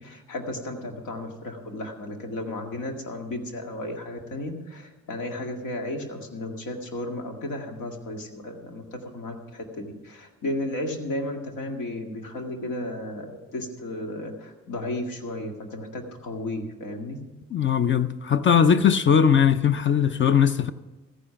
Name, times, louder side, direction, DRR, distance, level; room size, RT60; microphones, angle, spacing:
voice 1, 0.0-17.2, left 1 dB, 80° left, 2.0 m, -34 dB
voice 2, 17.5-20.7, left 7 dB, 40° left, 0.6 m, -20 dB
14.5 x 9.7 x 5.8 m
cardioid pair, 90°, 30 cm